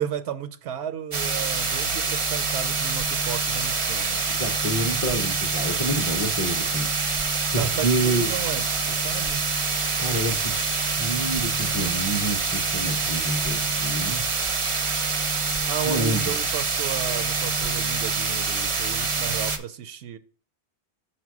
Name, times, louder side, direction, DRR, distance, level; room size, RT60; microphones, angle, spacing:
voice 1, 0.0-4.2 7.6-9.5 15.7-20.2, right 9 dB, 80° right, 0.8 m, -33 dB
sound 1, 1.1-19.6, right 4 dB, 40° right, 0.5 m, -26 dB
voice 2, 4.3-6.9 7.5-8.3 10.0-14.2 15.8-16.4, right 1 dB, 25° left, 0.5 m, -28 dB
5.8 x 4.4 x 4.7 m
omnidirectional pair, 1.1 m